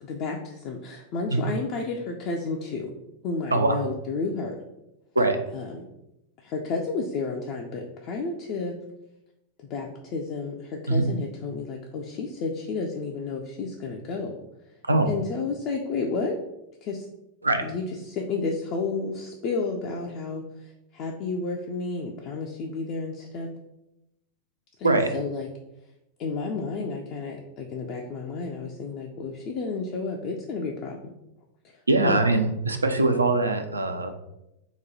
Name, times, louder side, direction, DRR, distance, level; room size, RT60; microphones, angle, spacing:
voice 1, 0.0-2.9 3.2-4.6 5.5-5.7 6.4-8.8 9.7-14.3 15.1-16.4 16.8-17.1 17.6-23.5 24.8-25.5 26.2-31.1 32.0-32.2, left 4 dB, 40° left, 0 dB, 0.3 m, -31 dB
voice 2, 3.5-3.8 5.2-5.4 10.9-11.1 14.9-15.1 17.4-17.7 24.8-25.1 31.9-34.2, right 2 dB, 80° right, 7 dB, 0.3 m, -22 dB
2.9 x 2.2 x 3.9 m, 0.89 s
figure-of-eight pair, 90°, 0 cm